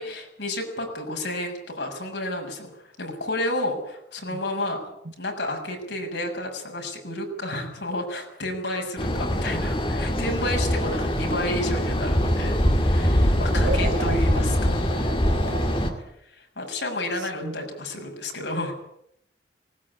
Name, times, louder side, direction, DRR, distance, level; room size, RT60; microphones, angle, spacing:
voice 1, 0.0-4.8 5.2-15.2 16.2-18.7, left 1 dB, 80° left, 2 dB, 6.6 m, -31 dB
sound 1, 9.0-15.9, equal, 30° left, 2.5 m, -23 dB
voice 2, 13.5-14.2 14.9-16.1 17.4-17.5, right 3 dB, 80° right, 6 dB, 1.3 m, -33 dB
19.5 x 19.0 x 9.8 m, 0.77 s
head